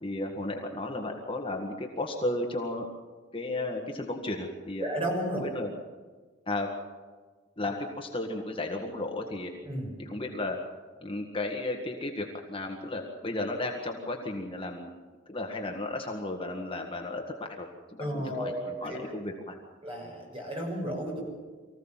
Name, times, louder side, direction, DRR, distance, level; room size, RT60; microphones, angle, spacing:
voice 1, 0.0-2.9 3.3-4.9 5.4-5.7 6.5-6.7 7.6-9.5 10.0-10.6 11.0-14.9 15.3-19.6, left 2 dB, 25° left, 1 dB, 1.8 m, -34 dB
voice 2, 4.8-5.5 9.6-9.9 18.0-19.0 19.8-21.2, equal, 30° right, 0 dB, 6.6 m, -33 dB
24.0 x 16.0 x 7.4 m, 1.4 s
head